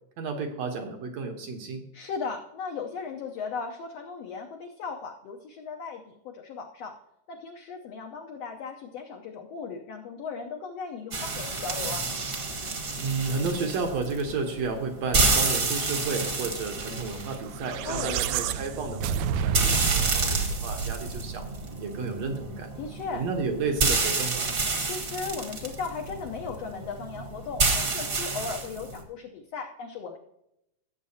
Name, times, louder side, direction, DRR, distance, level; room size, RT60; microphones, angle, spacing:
voice 1, 0.2-1.8 13.0-21.5 21.8-22.7 23.1-24.5, right 4 dB, 65° right, 4 dB, 2.0 m, -32 dB
voice 2, 1.9-6.9 7.3-12.1 17.8-18.2 22.8-23.3 24.8-30.2, left 5 dB, 70° left, 2 dB, 1.6 m, -37 dB
sound 1, 11.1-29.0, right 3 dB, 40° right, 1.3 m, -29 dB
sound 2, 17.5-21.9, right 7 dB, 80° right, 1.8 m, -29 dB
17.0 x 7.4 x 2.8 m, 0.82 s
omnidirectional pair, 3.7 m